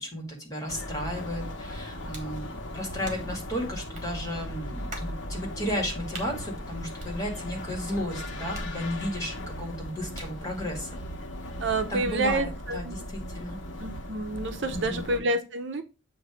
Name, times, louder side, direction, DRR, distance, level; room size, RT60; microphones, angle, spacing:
voice 1, 0.0-11.0 11.9-13.6 14.7-15.0, equal, 20° left, 0 dB, 2.0 m, -34 dB
sound 1, 0.7-15.2, left 1 dB, 85° left, 1.1 m, -38 dB
sound 2, 2.1-2.4 3.0-3.4 3.9-4.1 4.9-5.2 6.1-6.3 7.0-7.6 8.5-9.2 10.1-10.5, right 1 dB, 40° right, 1.6 m, -42 dB
voice 2, 11.6-13.0 13.8-15.8, right 2 dB, 70° right, 7 dB, 0.7 m, -28 dB
7.8 x 2.6 x 4.9 m, 0.29 s
head